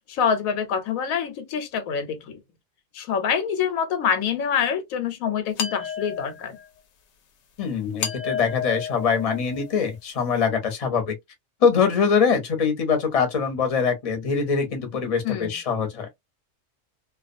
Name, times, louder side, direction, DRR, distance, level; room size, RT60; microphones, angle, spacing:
voice 1, 0.1-2.4 2.9-6.6 15.2-15.5, left 7 dB, 90° left, 1.1 m, -26 dB
sound 1, 5.6-6.7 8.0-9.9, left 7 dB, 65° left, 0.8 m, -32 dB
voice 2, 7.6-11.1 11.6-16.1, left 6 dB, 35° left, 0.7 m, -23 dB
2.3 x 2.2 x 2.5 m
omnidirectional pair, 1.4 m